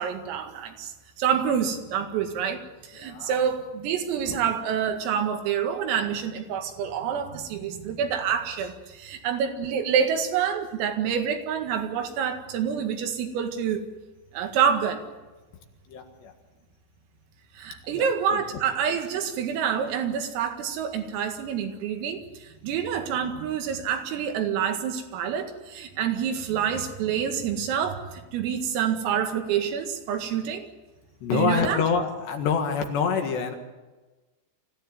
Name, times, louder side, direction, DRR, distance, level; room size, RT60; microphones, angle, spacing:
voice 1, 0.0-13.8 14.3-15.0 17.6-30.7 31.3-31.8, right 8 dB, 85° right, 5 dB, 4.6 m, -27 dB
voice 2, 2.9-3.4 4.3-4.4 15.9-16.3 17.9-18.4 31.2-33.6, left 5 dB, 65° left, 4 dB, 3.6 m, -27 dB
25.0 x 16.0 x 9.6 m, 1.2 s
omnidirectional pair, 5.9 m